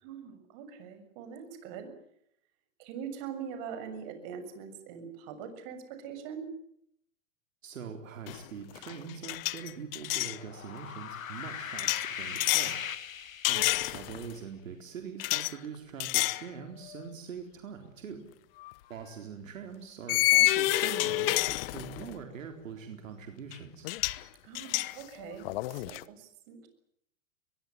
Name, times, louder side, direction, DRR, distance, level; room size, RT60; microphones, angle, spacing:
voice 1, 0.0-1.9 2.8-6.5 18.0-18.2 24.4-26.7, right 7 dB, 45° right, 9 dB, 6.8 m, -43 dB
voice 2, 7.6-12.8 13.5-18.2 18.9-23.9, right 7 dB, 75° right, 5 dB, 4.0 m, -43 dB
sound 1, 8.3-8.5 8.7-10.4 11.8-12.8 13.4-14.3 15.2-15.5 16.0-16.5 16.9-17.1 18.6-18.7 20.1-22.2 23.5-23.6 23.8-24.2 24.5-26.0, left 18 dB, 45° left, 1.1 m, -29 dB
sound 2, 10.3-14.0, left 8 dB, 90° left, 1.9 m, -39 dB
22.5 x 22.0 x 9.4 m, 0.72 s
hypercardioid pair, 130°, 39 cm